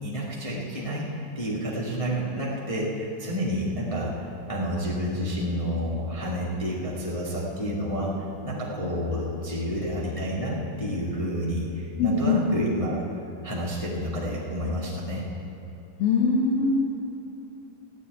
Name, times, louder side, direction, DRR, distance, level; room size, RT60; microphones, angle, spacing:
voice 1, 0.0-1.1 1.3-4.1 4.5-8.1 8.4-13.0 13.4-15.2, equal, 40° left, -6 dB, 0.4 m, -29 dB
voice 2, 12.0-12.4 16.0-16.7, left 4 dB, 85° left, -3 dB, 3.1 m, -22 dB
16.0 x 6.9 x 9.4 m, 3.0 s
omnidirectional pair, 4.2 m